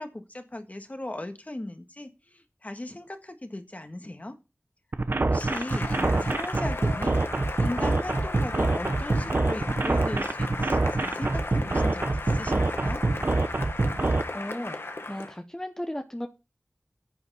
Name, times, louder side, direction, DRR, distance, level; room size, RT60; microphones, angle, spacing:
voice 1, 0.0-4.3 5.2-13.0, left 1 dB, 40° left, 7 dB, 1.5 m, -37 dB
sound 1, 4.9-14.2, right 2 dB, 60° right, 0.8 m, -25 dB
Cheering / Applause, 5.3-15.4, left 2 dB, 80° left, 1.3 m, -36 dB
voice 2, 14.3-16.3, left 1 dB, 15° left, 6 dB, 0.9 m, -35 dB
9.7 x 7.0 x 5.5 m, 0.29 s
wide cardioid pair, 50°, 4 cm